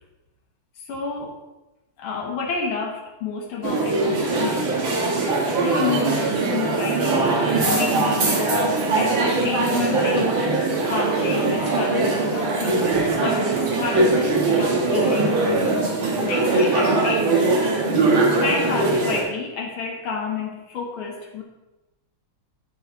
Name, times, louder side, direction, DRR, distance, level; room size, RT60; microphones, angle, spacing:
voice 1, 0.8-1.4 2.0-4.8 5.2-8.5 9.0-17.3 18.4-21.4, left 5 dB, 85° left, 0 dB, 2.1 m, -30 dB
sound 1, 3.6-19.2, right 3 dB, 70° right, 2.2 m, -21 dB
13.5 x 4.6 x 3.6 m, 1.1 s
omnidirectional pair, 2.3 m